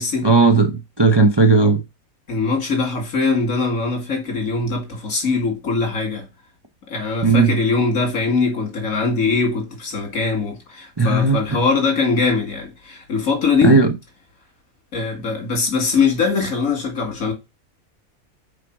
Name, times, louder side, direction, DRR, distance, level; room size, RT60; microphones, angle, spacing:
voice 1, 0.2-1.8 7.2-7.5 11.0-11.6 13.6-14.0, right 3 dB, 25° right, 0.7 m, -15 dB
voice 2, 2.3-6.3 6.9-13.8 14.9-17.3, left 4 dB, 70° left, 2.9 m, -21 dB
5.8 x 4.9 x 4.8 m
omnidirectional pair, 1.5 m